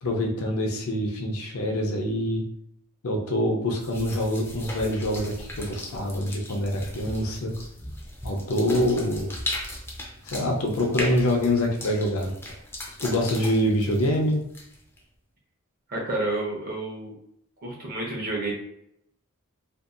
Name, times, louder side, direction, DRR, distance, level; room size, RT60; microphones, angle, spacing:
voice 1, 0.0-2.4 3.0-7.5 8.2-9.3 10.3-12.3 13.0-14.4, left 1 dB, 65° left, 1 dB, 0.6 m, -25 dB
sound 1, 3.8-15.0, left 1 dB, 10° left, 0.4 m, -38 dB
voice 2, 15.9-17.1 17.6-18.5, right 2 dB, 45° right, -2 dB, 0.8 m, -30 dB
2.6 x 2.2 x 2.4 m, 0.73 s
head